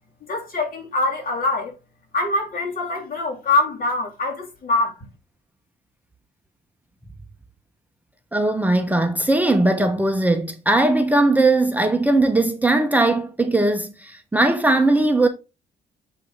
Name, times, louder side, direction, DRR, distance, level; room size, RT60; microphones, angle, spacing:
voice 1, 0.3-1.7 2.1-5.0, left 2 dB, 45° left, 3.3 m, -23 dB
voice 2, 8.3-15.3, right 2 dB, 10° right, 1.0 m, -19 dB
7.7 x 5.1 x 4.0 m
cardioid pair, 90°, 20 cm